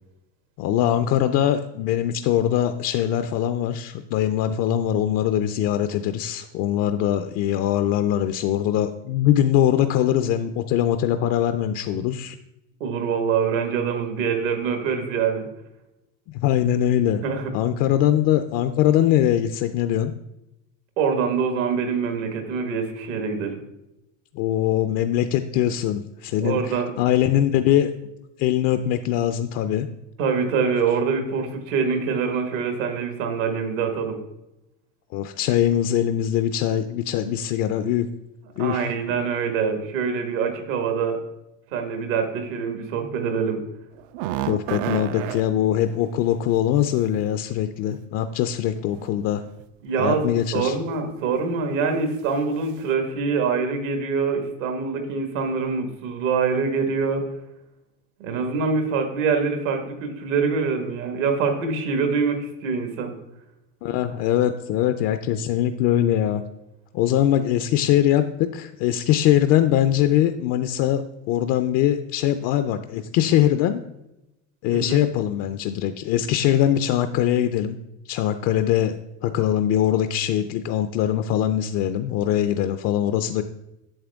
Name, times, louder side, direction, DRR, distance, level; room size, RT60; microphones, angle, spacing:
voice 1, 0.6-12.4 16.3-17.2 17.5-20.1 24.3-27.9 28.4-29.9 35.1-38.1 38.6-38.9 44.5-49.4 50.0-50.8 63.8-66.4 66.9-71.0 71.3-73.8 74.6-77.8 78.1-79.0 79.2-83.4, left 11 dB, 45° left, 9 dB, 0.4 m, -22 dB
voice 2, 12.8-15.4 17.2-17.5 21.0-23.6 26.4-26.9 30.2-34.2 38.6-41.2 41.7-43.6 49.8-50.2 50.5-57.2 58.2-63.1 74.7-75.0, right 5 dB, 75° right, 5 dB, 1.6 m, -24 dB
sound 1, 44.0-45.5 47.6-47.7 48.7-49.1 49.4-49.7 50.4-50.7 51.1-51.2 51.6-51.7, right 13 dB, 55° right, 0.5 m, -30 dB
8.8 x 6.9 x 3.5 m, 0.91 s
supercardioid pair, 135°, 37 cm